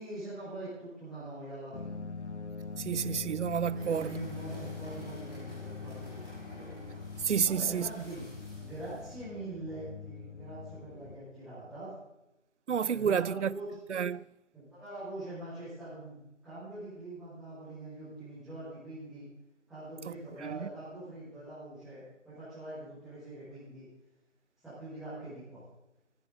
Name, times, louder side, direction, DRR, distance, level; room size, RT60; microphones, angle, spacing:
voice 1, 0.0-2.0 3.7-6.7 7.4-8.2 8.6-11.9 12.9-13.7 14.5-19.2 19.7-23.9 24.6-25.6, right 2 dB, ahead, 5.1 m, -43 dB
sound 1, 1.7-11.2, left 5 dB, 65° left, 1.8 m, -43 dB
voice 2, 2.8-4.2 7.2-7.9 12.7-13.6 13.9-14.2 20.1-20.2 20.4-20.7, right 7 dB, 65° right, 0.5 m, -30 dB
sound 2, 3.7-9.1, left 1 dB, 15° left, 5.8 m, -51 dB
15.5 x 15.0 x 4.0 m
figure-of-eight pair, 155°, 37 cm